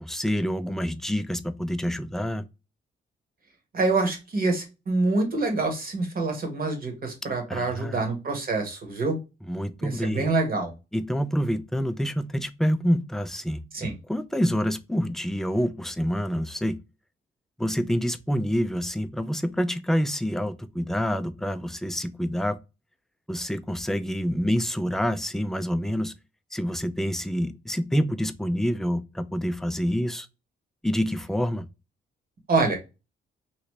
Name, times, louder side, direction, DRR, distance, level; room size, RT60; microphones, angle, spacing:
voice 1, 0.0-2.4 7.5-8.0 9.4-10.3 10.9-16.8 17.6-22.6 23.3-26.1 26.5-30.3 30.8-31.7, equal, ahead, 0.3 m, -27 dB
voice 2, 3.7-9.2 9.8-10.7 13.7-13.9 32.5-32.8, right 3 dB, 50° right, 1.4 m, -26 dB
3.0 x 2.8 x 3.1 m
cardioid pair, 90°, 20 cm